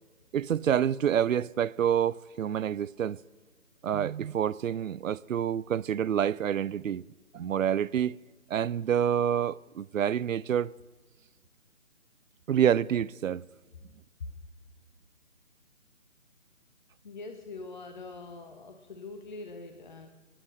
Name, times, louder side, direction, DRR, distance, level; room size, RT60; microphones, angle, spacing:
voice 1, 0.3-3.2 3.8-7.1 7.3-8.2 8.5-10.7 12.5-13.5, right 9 dB, 80° right, 0.5 m, -27 dB
voice 2, 17.0-20.1, left 3 dB, 35° left, 0.8 m, -43 dB
23.0 x 7.8 x 6.4 m
figure-of-eight pair, 160°, 39 cm